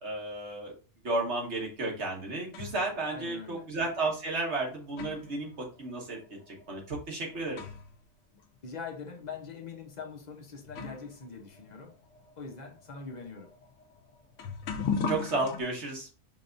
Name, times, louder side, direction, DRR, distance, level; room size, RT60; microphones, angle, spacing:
voice 1, 0.0-0.7 1.0-6.2 6.5-7.6 15.1-16.1, right 2 dB, 65° right, 1.7 m, -33 dB
sound 1, 1.9-2.9 3.9-4.0 4.6-8.0 8.3-8.4 9.3-9.4 10.2-10.3 10.7-15.6, left 5 dB, 85° left, 1.0 m, -39 dB
voice 2, 3.1-3.7 8.6-11.9 12.4-13.5, left 5 dB, 40° left, 0.9 m, -42 dB
5.7 x 3.4 x 2.6 m
omnidirectional pair, 1.3 m